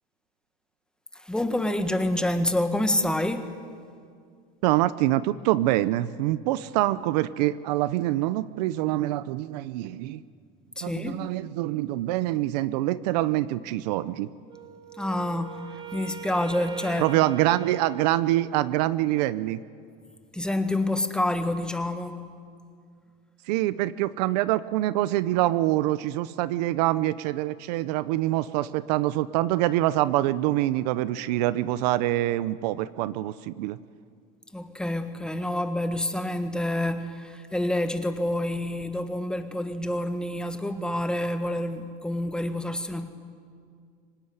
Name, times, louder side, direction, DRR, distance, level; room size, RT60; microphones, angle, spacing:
voice 1, 1.1-3.5 10.8-11.2 15.0-17.2 20.3-22.3 34.5-43.1, left 1 dB, 5° left, 8 dB, 1.5 m, -28 dB
voice 2, 4.6-10.2 10.8-14.3 17.0-19.6 23.5-33.8, right 15 dB, 75° right, 16 dB, 0.7 m, -25 dB
Wind instrument woodwind instrument, 14.5-18.8, right 10 dB, 25° right, 2.4 m, -42 dB
25.0 x 18.0 x 9.7 m, 2.2 s
supercardioid pair, 130°, 21 cm